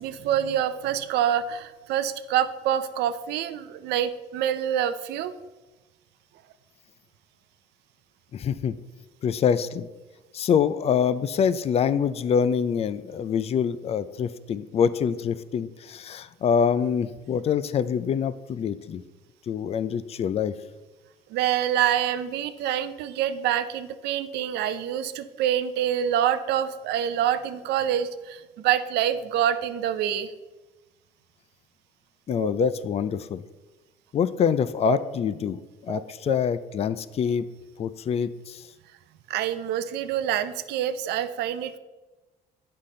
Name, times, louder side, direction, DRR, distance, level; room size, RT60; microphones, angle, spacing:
voice 1, 0.0-5.3 21.3-30.3 32.3-32.7 34.8-35.0 35.9-36.0 36.3-36.4 39.3-41.8, right 10 dB, 80° right, 11 dB, 0.5 m, -26 dB
voice 2, 8.3-8.7 9.2-9.9 10.3-19.0 19.5-20.5 32.3-33.4 34.1-35.6 35.9-37.4 37.8-38.6, left 7 dB, 40° left, 15 dB, 0.4 m, -25 dB
8.2 x 5.7 x 3.8 m, 1.2 s
cardioid pair, 110°, 17 cm